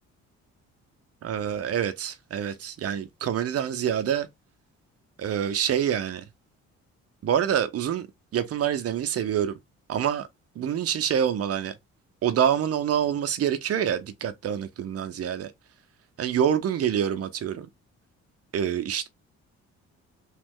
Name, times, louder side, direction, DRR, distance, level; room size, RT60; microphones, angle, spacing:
voice 1, 1.2-4.3 5.2-6.2 7.2-8.1 8.3-9.6 9.9-10.3 10.5-11.8 12.2-15.5 16.2-17.7 18.5-19.1, right 9 dB, 50° right, 0.7 m, -26 dB
3.1 x 2.4 x 3.6 m
cardioid pair, 90°, 30 cm